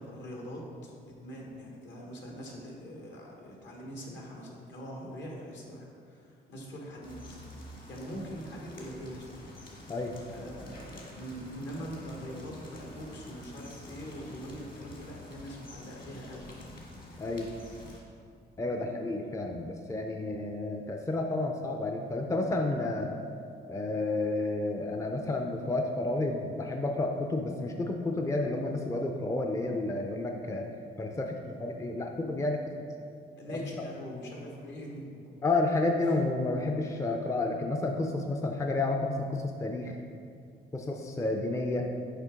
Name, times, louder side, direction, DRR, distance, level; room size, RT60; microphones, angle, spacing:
voice 1, 0.0-7.2 7.6-9.5 9.8-9.9 10.3-16.5 18.6-19.0 33.4-35.4 36.1-36.2 36.6-36.7, equal, 65° left, -1 dB, 1.4 m, -43 dB
sound 1, 7.0-18.0, left 1 dB, 45° left, 1.6 m, -48 dB
voice 2, 17.2-17.5 18.6-23.1 23.7-30.7 31.0-32.8 33.8-33.9 35.4-40.0 40.7-41.8, left 2 dB, 15° left, 2 dB, 0.5 m, -31 dB
6.6 x 5.0 x 3.7 m, 2.4 s
cardioid pair, 90°, 20 cm